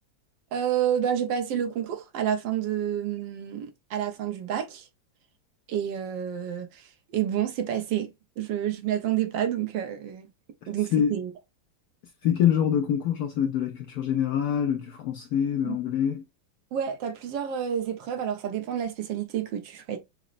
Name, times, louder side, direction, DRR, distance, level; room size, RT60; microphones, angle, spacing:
voice 1, 0.5-4.9 5.7-8.1 8.4-10.3 10.7-11.3 15.6-15.8 16.7-20.0, right 9 dB, 75° right, 1.3 m, -29 dB
voice 2, 12.2-16.2, left 9 dB, 75° left, 0.9 m, -25 dB
6.0 x 2.1 x 2.4 m
omnidirectional pair, 2.1 m